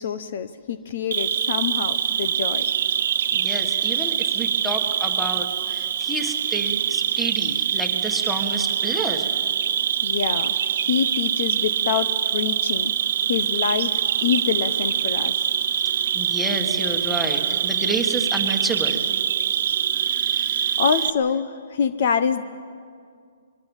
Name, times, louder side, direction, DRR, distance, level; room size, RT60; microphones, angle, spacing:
voice 1, 0.0-2.6 10.0-12.9 13.3-15.4 20.8-22.4, left 7 dB, 50° left, 12 dB, 0.9 m, -26 dB
Cricket, 1.1-21.1, right 9 dB, 50° right, 0.9 m, -24 dB
voice 2, 3.3-9.3 16.1-19.1 20.1-20.8, right 1 dB, ahead, 5 dB, 1.8 m, -30 dB
23.5 x 22.5 x 7.4 m, 2.2 s
hypercardioid pair, 160°, 0 cm